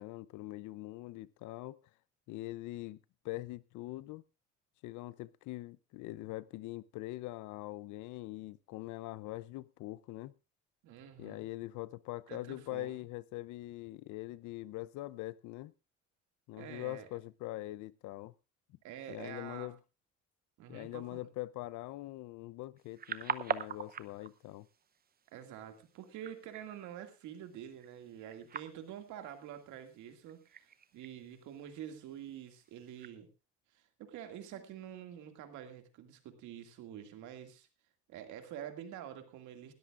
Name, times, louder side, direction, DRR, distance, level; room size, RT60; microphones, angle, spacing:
voice 1, 0.0-1.8 2.3-3.0 3.2-4.2 4.8-10.3 11.2-15.7 16.5-18.3 19.1-19.8 20.7-24.7, left 18 dB, 90° left, 0.6 m, -43 dB
voice 2, 10.8-11.5 12.3-13.0 16.5-17.1 18.8-19.7 20.6-21.3 25.3-33.3 33.7-37.7 38.1-39.7, right 10 dB, 85° right, 2.3 m, -47 dB
sound 1, 22.8-33.1, right 7 dB, 30° right, 0.7 m, -45 dB
19.5 x 13.5 x 2.5 m
cardioid pair, 110°, 29 cm